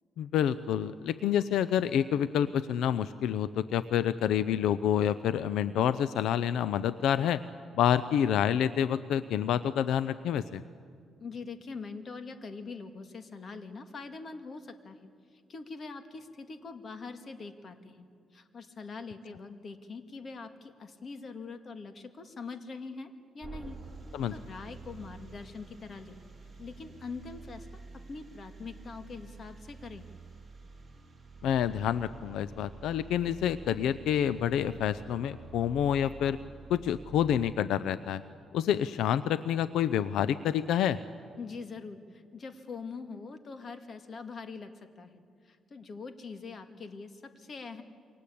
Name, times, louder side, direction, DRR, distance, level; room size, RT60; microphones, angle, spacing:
voice 1, 0.2-7.4 7.7-10.6 24.1-24.3 31.4-36.4 36.7-38.2 38.5-41.0, left 9 dB, 85° left, 15 dB, 0.6 m, -28 dB
voice 2, 11.2-18.1 18.3-23.8 24.3-26.2 26.6-27.7 28.1-30.1 41.4-47.8, left 4 dB, 45° left, 8 dB, 2.1 m, -43 dB
sound 1, 23.4-37.5, right 4 dB, 15° right, 4.7 m, -49 dB
29.0 x 23.5 x 8.6 m, 2.2 s
cardioid pair, 105°, 0 cm